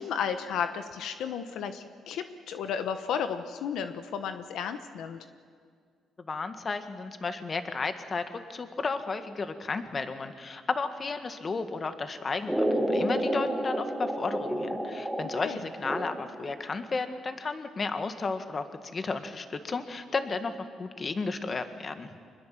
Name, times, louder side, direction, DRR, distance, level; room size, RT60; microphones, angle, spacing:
voice 1, 0.0-5.2 15.4-15.6, left 7 dB, 80° left, 9 dB, 1.1 m, -33 dB
voice 2, 6.2-18.6 18.9-22.1, left 4 dB, 35° left, 8 dB, 1.8 m, -33 dB
sound 1, 12.5-16.5, right 1 dB, ahead, 3.8 m, -30 dB
25.5 x 21.0 x 7.7 m, 2.1 s
cardioid pair, 90°, 0 cm